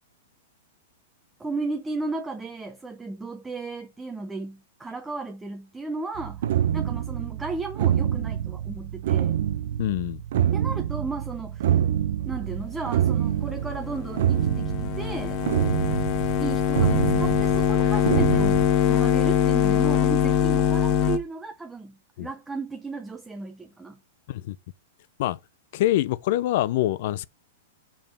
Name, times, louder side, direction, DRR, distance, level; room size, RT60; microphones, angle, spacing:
voice 1, 1.4-6.4 6.7-9.4 10.5-11.8 12.3-15.4 16.4-24.0, right 3 dB, 5° right, 0.7 m, -35 dB
sound 1, 6.1-18.7, right 10 dB, 65° right, 0.7 m, -26 dB
voice 2, 9.8-10.2 22.2-22.3 24.3-24.6 25.2-25.4 25.7-27.3, left 14 dB, 55° left, 0.4 m, -25 dB
sound 2, 13.5-21.2, left 9 dB, 35° left, 1.1 m, -23 dB
5.4 x 4.7 x 5.2 m
supercardioid pair, 155°, 0 cm